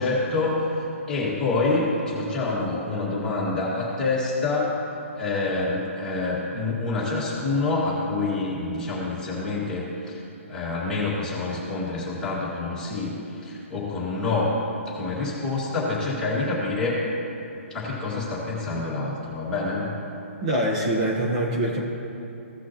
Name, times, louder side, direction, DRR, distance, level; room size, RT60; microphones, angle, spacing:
voice 1, 0.0-4.8 5.2-10.2 10.5-14.6 14.9-17.0 17.7-19.9, left 3 dB, 5° left, -8 dB, 1.9 m, -27 dB
voice 2, 20.4-21.8, right 1 dB, 30° right, -1 dB, 1.1 m, -24 dB
16.5 x 6.1 x 3.0 m, 2.8 s
hypercardioid pair, 170°, 7 cm